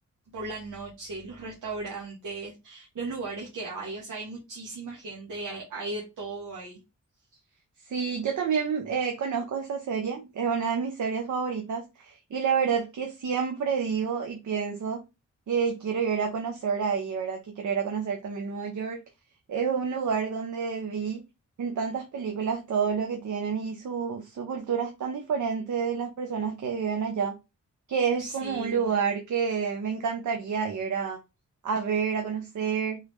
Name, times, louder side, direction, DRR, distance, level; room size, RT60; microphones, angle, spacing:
voice 1, 0.3-6.8 28.2-28.9, right 3 dB, 90° right, 1.3 m, -37 dB
voice 2, 7.8-15.0 15.5-19.0 19.5-21.2 21.6-27.4 27.9-31.2 31.6-33.0, right 6 dB, 75° right, 0.8 m, -29 dB
3.7 x 3.3 x 3.2 m
wide cardioid pair, 100°, 30 cm